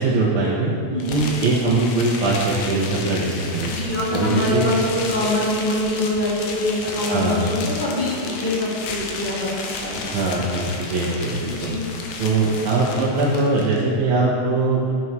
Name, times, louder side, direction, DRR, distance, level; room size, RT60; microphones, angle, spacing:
voice 1, 0.0-0.7 1.1-3.7 4.1-4.6 7.1-7.5 10.0-11.7 12.2-14.9, right 3 dB, 80° right, -5 dB, 2.4 m, -21 dB
sound 1, 1.0-13.8, left 3 dB, 85° left, 2.4 m, -32 dB
voice 2, 3.7-10.0 11.6-11.8, left 1 dB, 15° left, -8 dB, 2.4 m, -24 dB
12.5 x 6.2 x 4.6 m, 2.3 s
omnidirectional pair, 3.3 m